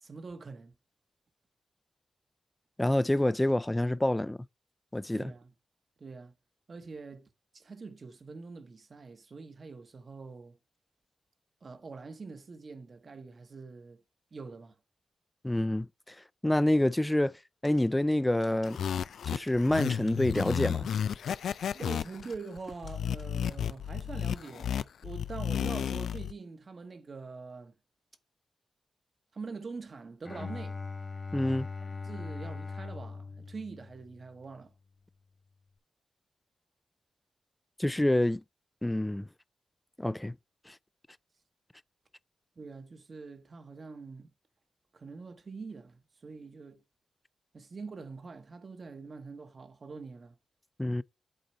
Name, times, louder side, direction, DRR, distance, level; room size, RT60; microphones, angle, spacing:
voice 1, 0.0-0.7 5.1-5.5 6.0-6.3 6.7-7.3 7.5-10.6 11.6-14.0 14.3-14.8 21.7-27.7 29.3-30.8 32.0-34.7 42.6-44.3 44.9-46.8 47.5-50.4, right 4 dB, 50° right, 1.0 m, -44 dB
voice 2, 2.8-4.4 4.9-5.3 15.4-16.2 16.4-17.3 17.6-18.8 19.3-20.9 31.3-31.7 37.8-38.4 38.8-39.3 40.0-40.3 40.7-40.8 50.8-51.0, left 1 dB, 10° left, 0.4 m, -27 dB
sound 1, 17.6-22.6 22.9-23.5, left 4 dB, 65° left, 2.5 m, -60 dB
sound 2, 18.7-26.3, left 8 dB, 85° left, 0.3 m, -33 dB
Bowed string instrument, 30.2-34.4, left 4 dB, 35° left, 1.7 m, -40 dB
8.1 x 4.3 x 4.1 m
cardioid pair, 70°, 0 cm